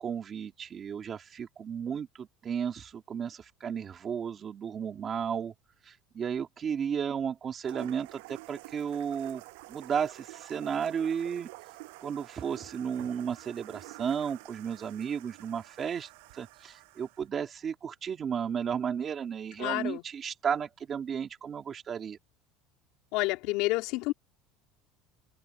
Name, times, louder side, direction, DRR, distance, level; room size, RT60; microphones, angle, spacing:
voice 1, 0.0-5.5 5.9-9.4 9.7-11.5 12.0-22.2, right 7 dB, 25° right, 2.1 m, -34 dB
sound 1, 7.6-17.3, right 27 dB, 80° right, 6.7 m, -49 dB
voice 2, 19.6-20.0 23.1-24.1, left 21 dB, 60° left, 3.2 m, -29 dB
cardioid pair, 165°, 0 cm